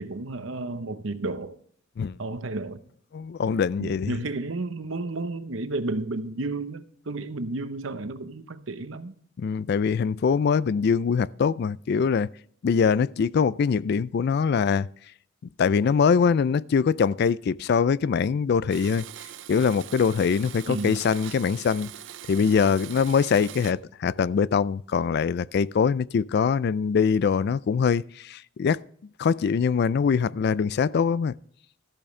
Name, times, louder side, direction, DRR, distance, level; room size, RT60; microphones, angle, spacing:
voice 1, 0.0-1.6 2.2-2.8 3.8-9.1 20.7-21.0, right 2 dB, 80° right, 0.9 m, -32 dB
voice 2, 3.1-4.2 9.4-12.3 12.6-14.9 15.6-19.0 19.5-21.9 22.3-28.8 29.2-31.3, left 6 dB, 55° left, 0.3 m, -23 dB
Domestic sounds home sounds, 18.7-23.7, right 11 dB, 65° right, 0.5 m, -42 dB
14.0 x 8.5 x 3.2 m
head